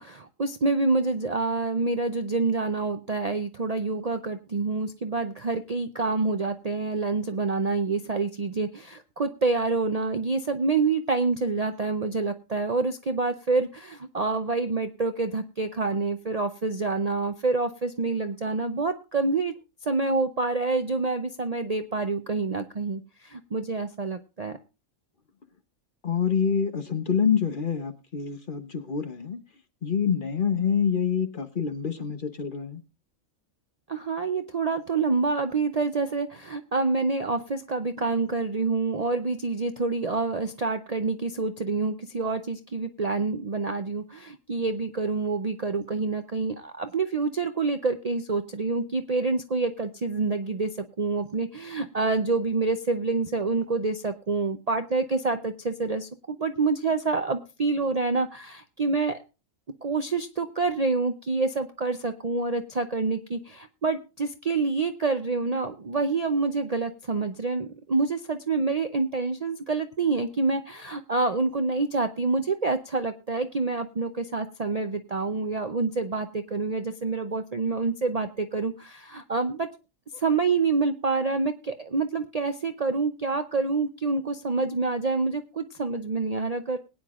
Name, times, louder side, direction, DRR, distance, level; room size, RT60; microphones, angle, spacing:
voice 1, 0.0-19.5 19.8-24.6 33.9-59.2 59.8-79.7 80.1-86.8, right 3 dB, 45° right, 7 dB, 0.5 m, -27 dB
voice 2, 26.0-29.4 29.8-32.8, left 7 dB, 45° left, 9 dB, 1.0 m, -26 dB
21.0 x 9.5 x 2.4 m, 0.30 s
omnidirectional pair, 1.4 m